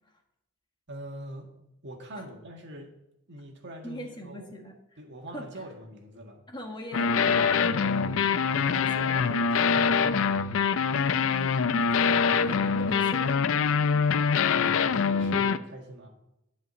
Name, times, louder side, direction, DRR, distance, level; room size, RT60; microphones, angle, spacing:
voice 1, 0.9-1.5 1.8-2.9 3.3-4.5 5.0-6.4 8.5-10.5 14.5-16.1, right 1 dB, 60° right, 2 dB, 1.8 m, -43 dB
voice 2, 3.8-4.7 5.3-5.5 6.5-9.2 11.2-13.6, left 1 dB, 20° left, 2 dB, 1.5 m, -41 dB
sound 1, 6.9-15.6, left 6 dB, 70° left, 0.5 m, -24 dB
11.0 x 5.1 x 7.6 m, 0.85 s
head